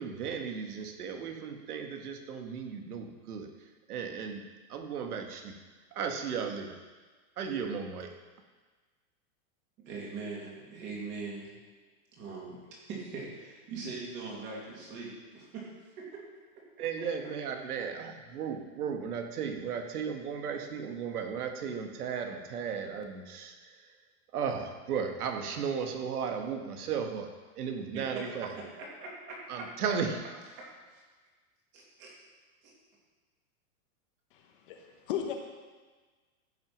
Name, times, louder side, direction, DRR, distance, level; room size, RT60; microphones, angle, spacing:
voice 1, 0.0-3.5 3.9-4.4 4.7-5.6 5.9-6.8 7.4-8.2 16.8-23.9 24.3-28.5 29.5-30.2, right 6 dB, 80° right, 4 dB, 1.7 m, -35 dB
voice 2, 9.9-11.5 12.2-12.6 12.9-16.2 27.9-28.3 28.6-29.7 30.6-31.0 31.7-32.1 32.6-32.7, right 4 dB, 25° right, -3 dB, 2.7 m, -42 dB
voice 3, 34.3-35.3, left 9 dB, 35° left, 3 dB, 1.1 m, -36 dB
15.0 x 6.2 x 6.0 m, 1.4 s
supercardioid pair, 175°, 45 cm